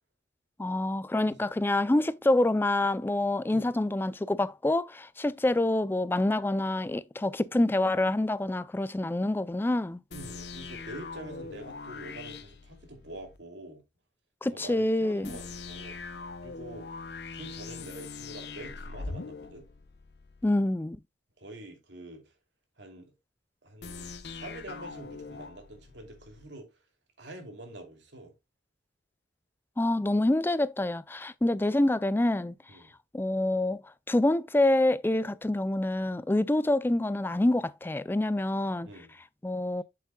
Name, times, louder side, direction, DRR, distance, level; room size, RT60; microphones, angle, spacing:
voice 1, 0.6-10.0 14.4-15.4 20.4-21.0 29.8-32.5 33.1-33.8 34.1-38.9 39.4-39.8, left 1 dB, 10° left, 0.3 m, -26 dB
sound 1, 10.1-13.4 15.2-20.5 23.8-26.5, left 4 dB, 65° left, 0.8 m, -42 dB
voice 2, 10.1-13.8 14.5-16.0 16.4-16.9 17.3-19.7 21.4-22.2 22.8-23.1 23.6-26.7 27.2-28.3 32.7-32.9 38.9-39.2, right 1 dB, 90° right, 2.6 m, -46 dB
7.7 x 7.4 x 2.2 m
head